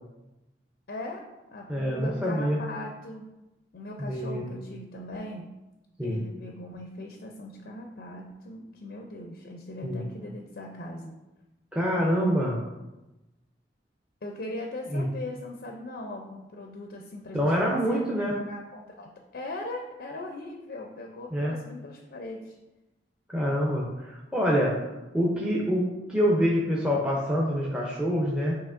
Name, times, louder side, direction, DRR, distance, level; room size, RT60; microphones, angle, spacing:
voice 1, 0.9-1.2 1.5-3.3 3.7-5.5 6.0-11.2 14.2-22.6, left 1 dB, 55° left, 2 dB, 0.4 m, -39 dB
voice 2, 1.7-2.6 4.0-4.4 6.0-6.2 9.8-10.0 11.7-12.6 14.9-15.0 17.3-18.4 21.3-21.6 23.3-24.9 25.1-28.5, equal, 5° right, -4 dB, 0.5 m, -26 dB
7.0 x 2.9 x 2.5 m, 1.0 s
head